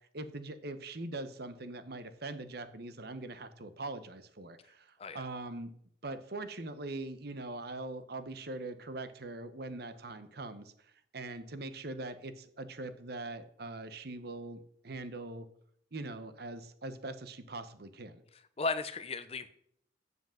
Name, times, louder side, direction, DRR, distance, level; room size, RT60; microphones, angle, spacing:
voice 1, 0.1-5.7 6.0-10.7 11.1-15.5 15.9-18.2, right 2 dB, 55° right, 11 dB, 0.9 m, -42 dB
voice 2, 18.6-19.5, left 3 dB, 30° left, 13 dB, 0.7 m, -35 dB
8.0 x 7.5 x 7.6 m, 0.67 s
head